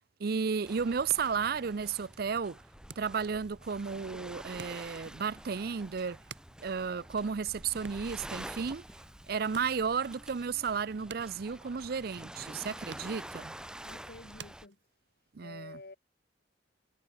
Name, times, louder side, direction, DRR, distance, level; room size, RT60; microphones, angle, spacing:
voice 1, 0.2-2.6 3.0-6.2 6.6-8.8 9.3-13.5 15.3-15.8, right 6 dB, 60° right, 0.5 m, -33 dB
Waves surf, 0.6-14.7, right 1 dB, 5° right, 1.2 m, -48 dB
sound 1, 0.8-15.3, right 5 dB, 85° right, 5.1 m, -55 dB
voice 2, 13.8-14.8 15.2-16.0, left 2 dB, 60° left, 1.5 m, -49 dB
head